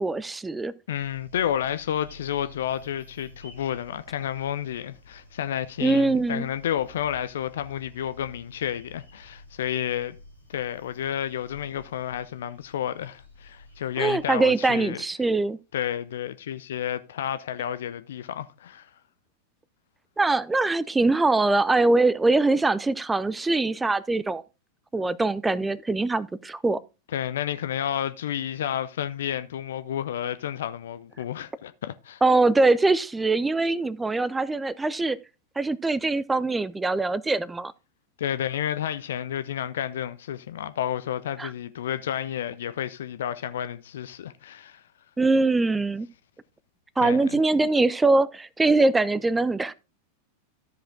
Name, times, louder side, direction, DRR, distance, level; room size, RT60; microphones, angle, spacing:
voice 1, 0.0-0.7 5.8-6.5 14.0-15.6 20.2-24.4 24.9-26.8 32.2-35.2 35.6-37.7 41.4-41.5 45.2-46.1 47.0-49.7, right 3 dB, 10° right, 0.4 m, -22 dB
sound 1, 0.9-14.3, left 1 dB, 90° left, 2.9 m, -51 dB
voice 2, 0.9-10.2 10.5-15.0 15.7-18.9 27.1-32.2 38.2-44.8 47.0-47.4, left 10 dB, 60° left, 0.5 m, -31 dB
13.5 x 5.0 x 3.6 m
figure-of-eight pair, 90°, 0 cm